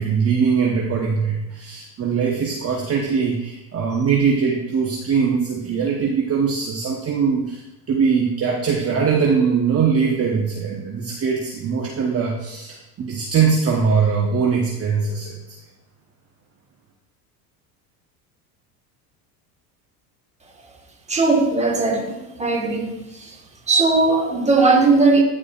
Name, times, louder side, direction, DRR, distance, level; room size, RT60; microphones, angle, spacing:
voice 1, 0.0-15.3, right 6 dB, 30° right, 1.1 m, -21 dB
voice 2, 21.1-22.9 23.7-25.2, right 3 dB, 15° right, 1.5 m, -18 dB
13.0 x 4.9 x 2.5 m
supercardioid pair, 95°, 48 cm